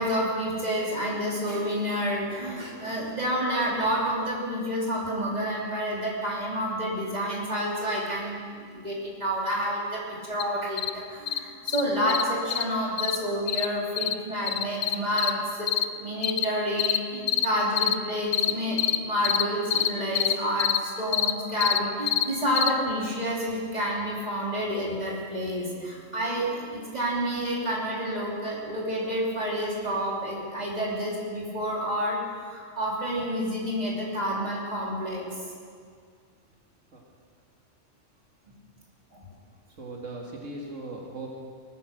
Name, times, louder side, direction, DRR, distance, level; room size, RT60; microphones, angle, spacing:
voice 1, 0.0-35.4 39.1-39.2, equal, 35° right, -4 dB, 3.1 m, -29 dB
sound 1, 10.4-10.5 10.8-10.9 11.3-11.4 11.7-11.8 12.1-12.2 12.5-12.6 13.0-13.2 13.5-13.7 14.0-14.1 14.5-15.3 15.7-15.8 16.2-16.5 16.8-17.0 17.3-17.5 17.8-17.9 18.3-18.5 18.8-19.0 19.2-19.4 19.7-19.9 20.2-20.3 20.6-20.8 21.1-21.3 21.6-21.8 22.1-22.2 22.6-22.7, left 10 dB, 75° left, 1.0 m, -24 dB
voice 2, 39.8-41.3, right 2 dB, 85° right, -1 dB, 2.4 m, -38 dB
19.0 x 10.0 x 6.7 m, 2.1 s
omnidirectional pair, 1.3 m